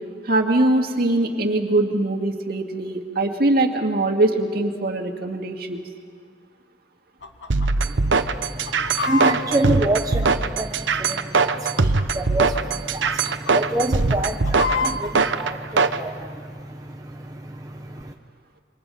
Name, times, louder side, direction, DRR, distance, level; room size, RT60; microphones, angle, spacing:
voice 1, 0.2-5.8, right 2 dB, 60° right, 3 dB, 2.1 m, -22 dB
Chicken rooster, 7.2-7.7 8.0-8.1 8.5-10.8 11.5-12.2 12.5-12.8 13.1-13.5 14.0-15.1, left 4 dB, 80° left, 1.4 m, -28 dB
sound 1, 7.5-16.0, right 4 dB, 85° right, 0.9 m, -21 dB
voice 2, 7.8-18.1, right 1 dB, 20° right, 2 dB, 0.9 m, -28 dB
28.0 x 25.0 x 5.6 m, 2.1 s
head